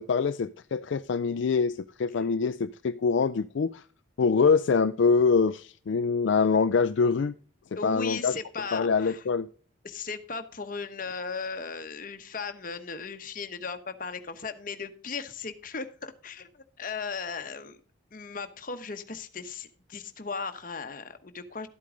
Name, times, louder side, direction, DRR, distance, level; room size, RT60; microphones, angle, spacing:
voice 1, 0.0-3.8 4.2-7.4 7.7-8.4 8.7-9.5, left 5 dB, 70° left, 0.4 m, -24 dB
voice 2, 7.7-9.2 9.8-17.8 18.1-21.7, left 5 dB, 45° left, 1.0 m, -37 dB
12.5 x 8.4 x 3.7 m
head